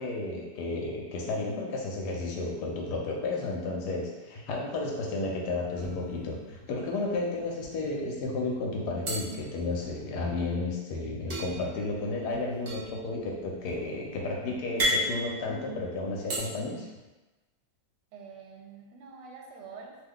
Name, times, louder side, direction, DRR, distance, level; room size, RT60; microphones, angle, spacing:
voice 1, 0.0-16.9, left 2 dB, 75° left, -1 dB, 1.1 m, -32 dB
voice 2, 4.5-4.8 18.1-20.0, right 5 dB, 85° right, 0 dB, 1.3 m, -47 dB
sound 1, 5.7-6.6 7.0-7.1 7.4-8.1 9.0-10.3 11.3-16.4, equal, 60° right, 0.6 m, -34 dB
sound 2, 5.8-6.6 7.5-8.2 9.8-10.2 12.2-12.9 13.6-14.4, left 2 dB, 40° left, 1.0 m, -53 dB
2.9 x 2.2 x 3.6 m, 1.2 s
omnidirectional pair, 1.9 m